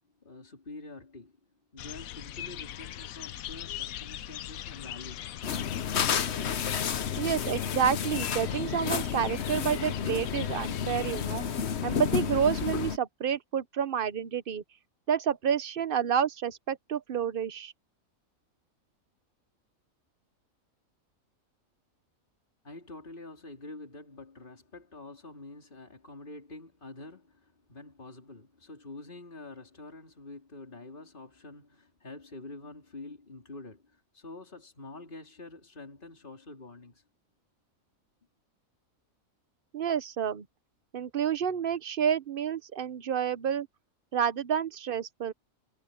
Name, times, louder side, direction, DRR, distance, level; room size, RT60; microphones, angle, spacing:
voice 1, 0.2-1.3 1.7-5.4 22.6-37.0, left 2 dB, 40° left, 3.9 m, -47 dB
sound 1, 1.8-11.3, left 12 dB, 90° left, 1.1 m, -41 dB
sound 2, 5.4-13.0, left 7 dB, 55° left, 1.1 m, -31 dB
voice 2, 7.2-11.4 11.8-14.6 15.1-17.7 39.7-40.4 40.9-43.7 44.1-45.3, right 8 dB, 45° right, 0.9 m, -29 dB
omnidirectional pair, 1.4 m